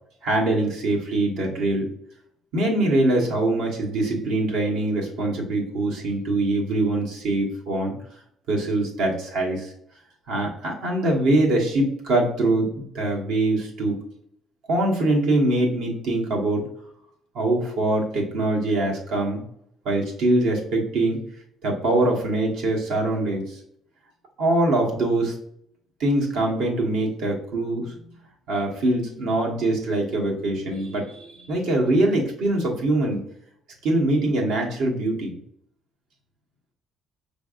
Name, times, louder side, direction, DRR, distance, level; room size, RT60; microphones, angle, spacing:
voice 1, 0.2-1.9 2.5-7.9 8.5-9.7 10.3-14.0 14.7-16.7 17.3-19.4 19.8-21.2 21.6-23.6 24.4-25.3 26.0-27.9 28.5-33.2 33.8-35.4, right 2 dB, 80° right, -1 dB, 1.3 m, -23 dB
5.2 x 3.3 x 2.5 m, 0.71 s
cardioid pair, 135°, 0 cm